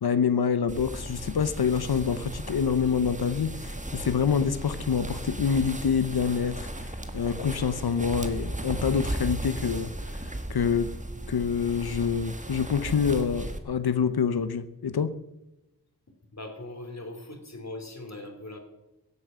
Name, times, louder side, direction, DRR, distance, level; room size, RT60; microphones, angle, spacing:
voice 1, 0.0-10.9 11.3-15.2, left 6 dB, 90° left, 0.8 m, -26 dB
sound 1, 0.7-13.6, right 1 dB, 20° right, 1.5 m, -36 dB
voice 2, 16.3-18.6, left 2 dB, 45° left, 3.0 m, -40 dB
16.0 x 8.5 x 7.5 m
wide cardioid pair, 85°, 37 cm